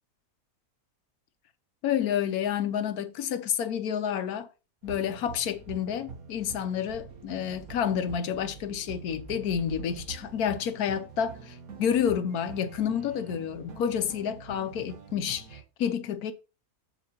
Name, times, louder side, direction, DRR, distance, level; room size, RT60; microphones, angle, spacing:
voice 1, 1.8-4.5 4.8-16.3, left 8 dB, 85° left, 1.3 m, -29 dB
sound 1, 4.8-15.6, right 5 dB, 75° right, 1.6 m, -45 dB
14.0 x 5.0 x 2.9 m
omnidirectional pair, 1.5 m